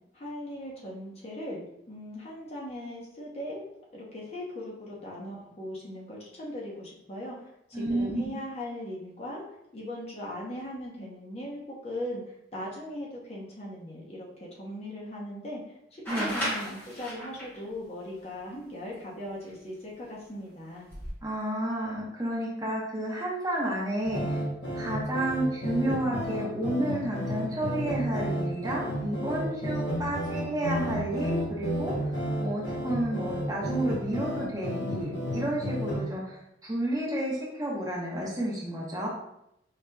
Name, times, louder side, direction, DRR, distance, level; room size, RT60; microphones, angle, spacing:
voice 1, 0.1-3.6 3.9-9.4 9.7-12.2 12.5-15.6 15.9-20.9, left 1 dB, 35° left, -4 dB, 0.8 m, -39 dB
voice 2, 7.7-8.4 16.1-16.4 21.2-24.4 24.8-31.9 32.4-39.1, right 1 dB, 20° right, -4 dB, 0.8 m, -31 dB
sound 1, 16.1-17.6 19.5-19.6 20.8-21.1, equal, 10° left, 1.3 m, -33 dB
sound 2, 24.0-36.0, equal, 70° left, 1.2 m, -32 dB
4.8 x 2.8 x 2.2 m, 0.79 s
head